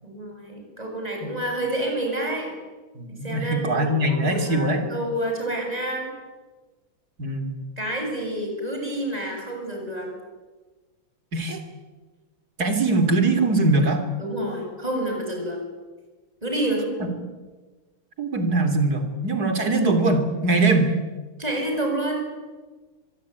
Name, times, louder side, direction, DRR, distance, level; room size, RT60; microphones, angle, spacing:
voice 1, 0.0-2.6 3.2-6.1 7.8-10.1 14.2-15.6 16.4-16.8 21.4-22.3, right 1 dB, 15° right, 2 dB, 7.8 m, -28 dB
voice 2, 3.0-4.9 7.2-7.5 11.3-11.6 12.6-14.0 17.0-17.1 18.2-20.9, right 2 dB, 45° right, 7 dB, 3.8 m, -22 dB
25.0 x 22.5 x 9.7 m, 1.3 s
omnidirectional pair, 2.4 m